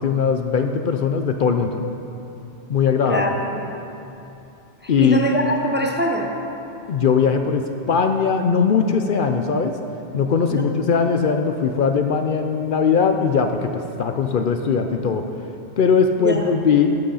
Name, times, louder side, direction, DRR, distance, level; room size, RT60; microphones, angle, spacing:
voice 1, 0.0-1.8 2.7-3.2 4.9-5.2 6.9-7.6 7.9-9.7 10.1-13.7 14.0-15.2 15.8-16.9, left 6 dB, 60° left, 6 dB, 0.7 m, -19 dB
voice 2, 3.1-3.8 4.8-6.3 10.5-10.7 16.2-16.5, equal, 10° right, 1 dB, 0.6 m, -24 dB
13.5 x 6.3 x 5.5 m, 2.8 s
omnidirectional pair, 1.1 m